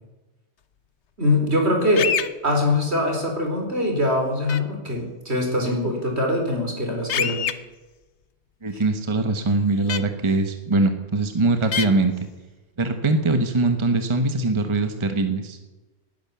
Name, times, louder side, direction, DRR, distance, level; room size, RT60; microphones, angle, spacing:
voice 1, 1.2-2.1 2.4-7.4 8.7-8.8, left 1 dB, 75° right, 1 dB, 4.7 m, -23 dB
sound 1, 2.0-2.3 4.5-4.6 7.1-7.5 9.9-10.0 11.7-11.9, left 8 dB, 85° left, 1.2 m, -24 dB
voice 2, 8.6-12.1 12.8-15.6, right 3 dB, 25° right, 7 dB, 1.3 m, -22 dB
18.5 x 11.0 x 7.1 m, 1.1 s
omnidirectional pair, 1.1 m